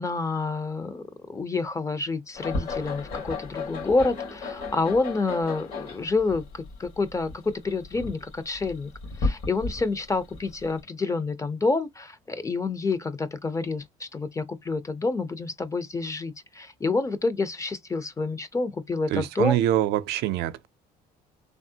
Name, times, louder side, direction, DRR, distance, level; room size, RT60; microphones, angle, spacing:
voice 1, 0.0-8.9 9.2-19.6, left 3 dB, 20° left, 0.5 m, -28 dB
sound 1, 2.3-10.8, left 3 dB, 70° left, 2.0 m, -33 dB
voice 2, 19.1-20.7, right 12 dB, 80° right, 0.4 m, -24 dB
3.4 x 2.0 x 2.7 m
cardioid pair, 110°, 17 cm